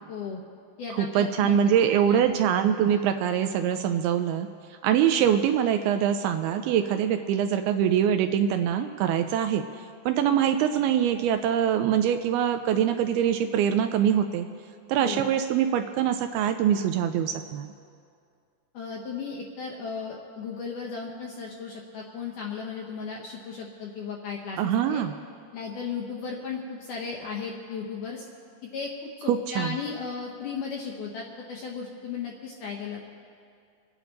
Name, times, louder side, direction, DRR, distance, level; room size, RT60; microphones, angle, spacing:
voice 1, 0.1-0.4 0.8-2.4 15.0-15.3 18.7-25.0 25.5-28.3 28.7-33.0, left 5 dB, 75° left, -1 dB, 1.9 m, -35 dB
voice 2, 0.9-4.5 4.8-9.6 10.1-14.5 14.9-17.7 24.6-25.1 29.3-29.8, right 9 dB, 80° right, 7 dB, 2.3 m, -24 dB
27.0 x 9.2 x 3.9 m, 2.3 s
omnidirectional pair, 4.7 m